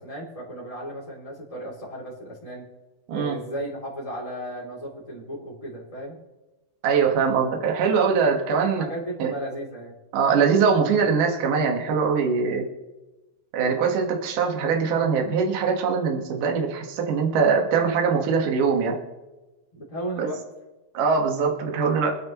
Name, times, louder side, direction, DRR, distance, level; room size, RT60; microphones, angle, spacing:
voice 1, 0.0-2.7 3.1-6.2 8.7-9.9 19.7-20.4, right 1 dB, 10° left, -6 dB, 2.3 m, -35 dB
voice 2, 6.8-8.8 9.2-9.3 10.1-12.7 13.5-19.0 20.2-20.3 20.9-22.2, right 5 dB, 65° right, 2 dB, 3.0 m, -22 dB
25.0 x 9.6 x 3.1 m, 1.1 s
omnidirectional pair, 4.2 m